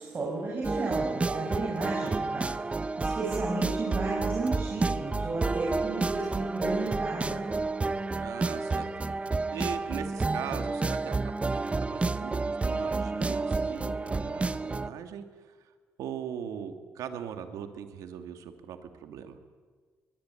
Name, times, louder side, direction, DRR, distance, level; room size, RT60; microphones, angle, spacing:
voice 1, 0.0-7.4, right 3 dB, 35° right, -3 dB, 6.5 m, -34 dB
sound 1, 0.6-14.9, right 3 dB, 20° right, 0.9 m, -30 dB
voice 2, 8.2-8.9 9.5-11.6 11.9-15.7 16.0-19.4, right 8 dB, 85° right, 7 dB, 2.6 m, -40 dB
23.0 x 22.5 x 9.3 m, 1.5 s
cardioid pair, 100°, 6 cm